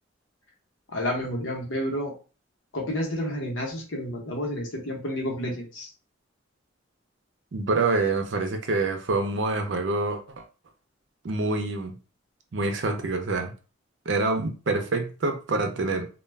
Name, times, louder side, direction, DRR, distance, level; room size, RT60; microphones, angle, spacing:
voice 1, 0.9-2.1 2.7-5.9, equal, 85° left, 0.9 m, -30 dB
voice 2, 7.5-10.2 11.2-12.0 12.5-13.5 14.1-16.1, right 3 dB, 70° right, 0.6 m, -26 dB
2.3 x 2.2 x 3.2 m
head